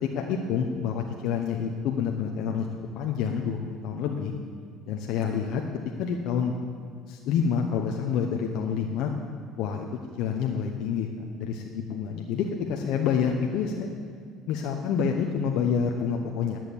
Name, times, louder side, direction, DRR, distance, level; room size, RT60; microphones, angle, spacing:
voice 1, 0.0-2.7 2.9-4.3 4.9-5.6 6.0-6.5 7.1-9.1 9.6-9.9 10.2-11.1 11.4-13.9 14.5-16.6, left 7 dB, 70° left, 2 dB, 1.0 m, -28 dB
11.0 x 7.6 x 8.6 m, 2.1 s
cardioid pair, 110°, 0 cm